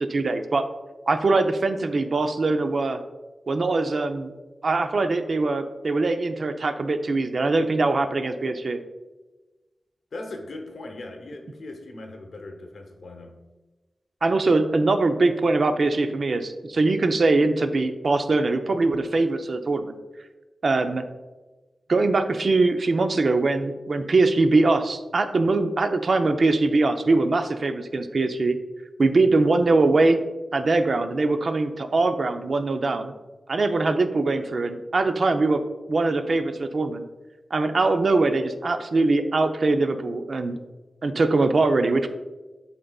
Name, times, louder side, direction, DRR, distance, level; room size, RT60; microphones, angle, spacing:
voice 1, 0.1-0.6 1.1-3.0 3.5-4.3 4.6-8.8 14.2-19.9 20.6-21.0 21.9-28.6 29.0-30.2 30.5-33.1 33.5-35.6 35.9-37.0 37.5-40.6 41.0-42.1, right 3 dB, 60° right, 7 dB, 0.5 m, -22 dB
voice 2, 10.1-13.3, left 2 dB, 80° left, 3 dB, 0.9 m, -39 dB
11.0 x 3.9 x 2.3 m, 1.2 s
wide cardioid pair, 115°, 0 cm